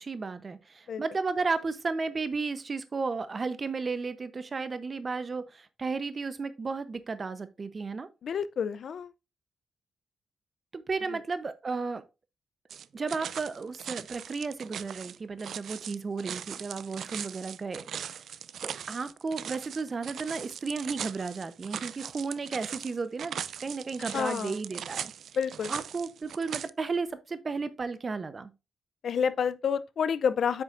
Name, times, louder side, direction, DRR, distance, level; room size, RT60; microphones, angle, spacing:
voice 1, 0.0-8.1 10.7-12.0 12.9-18.2 18.6-25.1 25.7-28.5, right 4 dB, 35° right, 0.8 m, -34 dB
voice 2, 8.2-9.1 11.1-11.2 24.0-24.6 25.3-25.7 29.0-30.6, left 7 dB, 65° left, 0.5 m, -29 dB
sound 1, 12.7-26.7, right 8 dB, 75° right, 0.4 m, -40 dB
8.4 x 6.2 x 2.5 m
cardioid pair, 110°, 0 cm